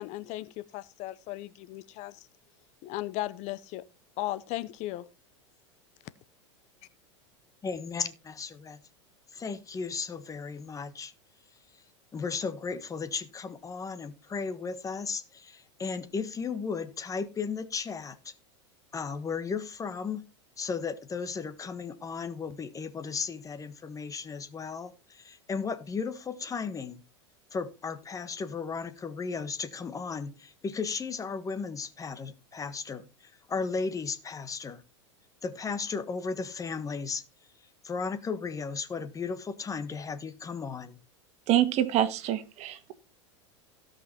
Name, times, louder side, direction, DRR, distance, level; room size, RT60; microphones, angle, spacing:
voice 1, 0.0-2.3 2.8-3.8 4.2-5.1, left 16 dB, 50° left, 0.8 m, -36 dB
voice 2, 7.6-8.8 9.3-11.1 12.1-18.3 18.9-20.3 20.6-27.0 27.5-34.8 35.4-37.2 37.8-41.0, left 5 dB, 20° left, 1.5 m, -35 dB
voice 3, 41.5-42.9, right 12 dB, 45° right, 1.9 m, -26 dB
17.0 x 5.7 x 4.3 m
hypercardioid pair, 100°, 15 cm